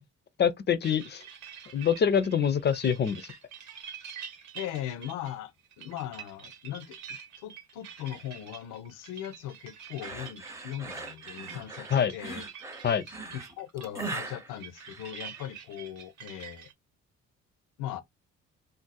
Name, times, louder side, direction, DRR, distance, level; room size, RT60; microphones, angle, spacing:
voice 1, 0.4-1.2 1.7-3.3 11.9-12.1 12.8-13.1, left 7 dB, 35° left, 0.4 m, -25 dB
sound 1, 0.8-16.7, right 7 dB, 70° right, 0.8 m, -47 dB
voice 2, 4.5-12.4 13.3-16.7 17.8-18.0, left 11 dB, 90° left, 0.5 m, -39 dB
sound 2, 10.0-15.5, right 3 dB, 10° right, 0.6 m, -40 dB
2.5 x 2.0 x 3.9 m
cardioid pair, 90°, 30 cm